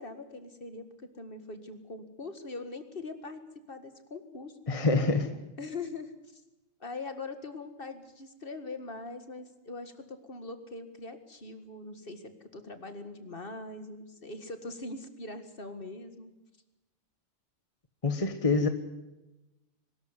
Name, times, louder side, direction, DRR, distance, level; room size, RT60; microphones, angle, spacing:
voice 1, 0.0-3.4 3.7-4.6 5.6-6.4 6.8-16.3, left 3 dB, 40° left, 9 dB, 2.1 m, -42 dB
voice 2, 4.7-5.4 18.0-18.7, left 3 dB, 25° left, 7 dB, 1.3 m, -26 dB
23.0 x 13.5 x 9.8 m, 1.0 s
omnidirectional pair, 1.4 m